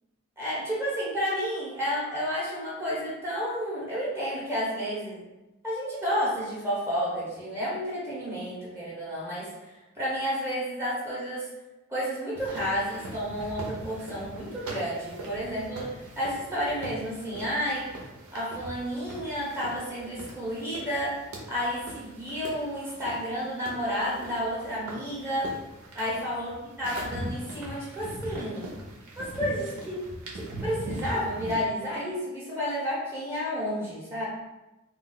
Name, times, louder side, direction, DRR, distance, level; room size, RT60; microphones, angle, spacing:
voice 1, 0.4-5.2 5.6-11.5 11.9-17.9 18.3-21.1 21.5-25.5 25.9-28.7 29.2-30.0 30.3-34.3, equal, 10° right, -7 dB, 0.7 m, -31 dB
sound 1, 12.4-31.7, right 1 dB, 85° right, 0.7 m, -41 dB
2.3 x 2.2 x 3.9 m, 1.0 s
head